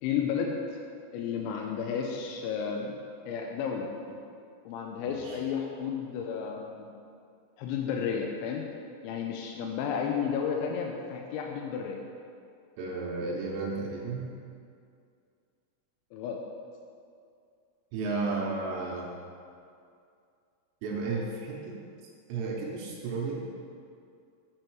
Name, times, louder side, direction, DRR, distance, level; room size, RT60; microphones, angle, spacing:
voice 1, 0.0-0.6 1.1-3.0 3.3-4.2 4.7-6.9 7.6-8.7 9.0-12.0 16.1-16.4, left 7 dB, 80° left, 1 dB, 2.7 m, -32 dB
voice 2, 5.1-5.4 12.8-14.3 17.9-19.1 20.8-21.8 22.3-23.5, right 3 dB, 75° right, -3 dB, 2.7 m, -33 dB
7.7 x 6.3 x 4.5 m, 2.4 s
omnidirectional pair, 5.7 m